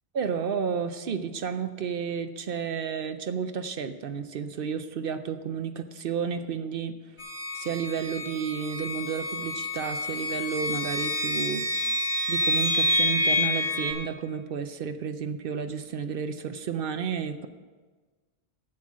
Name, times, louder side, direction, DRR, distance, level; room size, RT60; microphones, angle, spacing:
voice 1, 0.1-7.0 7.5-11.9 12.3-17.5, right 7 dB, 65° right, 9 dB, 0.7 m, -32 dB
sound 1, 7.2-13.9, left 1 dB, 85° left, 2.4 m, -28 dB
9.0 x 7.6 x 7.2 m, 1.4 s
omnidirectional pair, 1.1 m